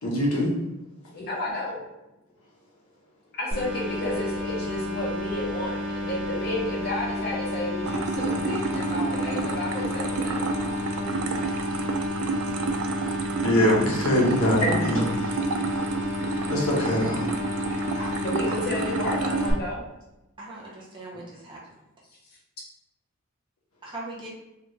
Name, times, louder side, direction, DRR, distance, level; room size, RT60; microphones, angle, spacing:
voice 1, 0.0-0.5 12.7-12.8 13.4-15.4 15.7-15.8 16.5-17.3, equal, 75° left, -4 dB, 1.0 m, -23 dB
voice 2, 1.1-1.8 3.4-10.4 16.9-17.0 18.2-19.8, left 1 dB, 45° left, -5 dB, 1.0 m, -32 dB
sound 1, 3.5-19.5, left 2 dB, 40° right, 1.4 m, -31 dB
sound 2, 7.8-19.5, right 4 dB, 75° right, 0.3 m, -30 dB
voice 3, 18.4-18.8 20.4-21.6 23.8-24.3, right 2 dB, 25° right, -5 dB, 0.7 m, -39 dB
3.3 x 2.4 x 3.0 m, 0.93 s
head